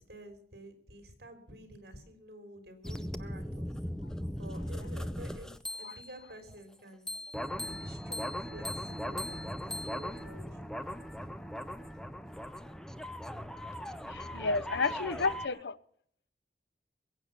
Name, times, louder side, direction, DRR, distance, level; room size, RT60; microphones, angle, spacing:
voice 1, 0.0-3.7 4.3-5.5 5.8-7.1 7.6-10.6 14.7-15.6, equal, 65° right, 3.7 m, -50 dB
sound 1, 2.8-6.2 7.1-15.5, equal, 5° left, 0.5 m, -39 dB
voice 2, 14.1-15.8, left 4 dB, 75° left, 0.7 m, -31 dB
21.5 x 8.2 x 6.6 m
head